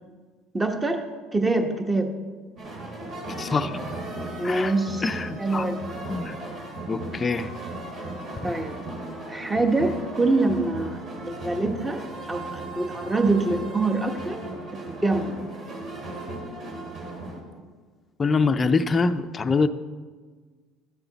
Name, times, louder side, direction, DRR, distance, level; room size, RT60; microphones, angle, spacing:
voice 1, 0.5-1.0 1.3-2.1 4.4-6.0 8.4-8.7 9.3-12.0 12.3-14.4 14.7-15.4, right 2 dB, 15° right, 6 dB, 1.1 m, -25 dB
sound 1, 2.6-17.4, right 2 dB, 50° right, 2.6 m, -36 dB
voice 2, 3.4-3.7 4.4-4.7 5.0-5.7 6.1-6.4 6.9-7.5 18.2-19.7, left 4 dB, 25° left, 8 dB, 0.5 m, -24 dB
13.0 x 6.8 x 4.0 m, 1.5 s
supercardioid pair, 100°, 0 cm